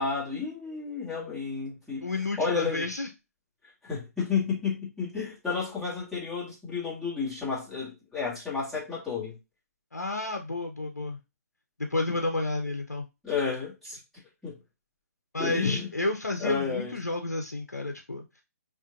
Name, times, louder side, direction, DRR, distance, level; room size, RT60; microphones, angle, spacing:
voice 1, 0.0-2.1 2.4-2.9 3.8-9.3 13.2-14.0 14.4-14.6 15.4-15.9 16.4-17.0, left 5 dB, ahead, 1.8 m, -31 dB
voice 2, 2.0-3.1 9.9-11.2 11.8-13.1 15.3-18.4, left 2 dB, 90° left, 0.6 m, -31 dB
4.9 x 2.5 x 2.5 m
figure-of-eight pair, 135°, 9 cm